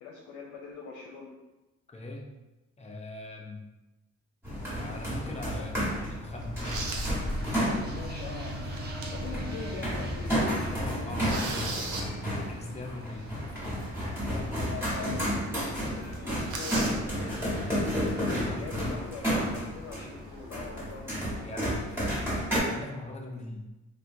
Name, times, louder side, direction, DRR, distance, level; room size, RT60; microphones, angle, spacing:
voice 1, 0.0-1.3 5.5-5.7 7.5-8.6 9.1-12.2 14.2-17.6 18.1-21.0, left 4 dB, 75° left, -1 dB, 0.6 m, -43 dB
voice 2, 1.9-2.3 2.8-3.6 4.7-6.6 10.8-11.5 12.3-13.3 13.7-13.8 18.2-18.7 21.3-23.7, left 2 dB, 20° left, 0 dB, 0.6 m, -41 dB
sound 1, 4.4-22.6, equal, 10° right, 1.3 m, -32 dB
sound 2, 5.0-5.3 5.8-5.9 6.4-7.2 7.6-7.7 8.5-9.3 9.7-9.8 10.1-10.4 10.7-12.1 14.0-14.1 14.6-14.7 15.0-15.1 15.4-15.6 15.9-17.0 18.1-18.3 18.9-19.5, right 3 dB, 85° right, 0.6 m, -37 dB
sound 3, 6.7-18.5, equal, 35° right, 0.6 m, -40 dB
3.4 x 2.2 x 2.6 m, 1.0 s
cardioid pair, 90°, 30 cm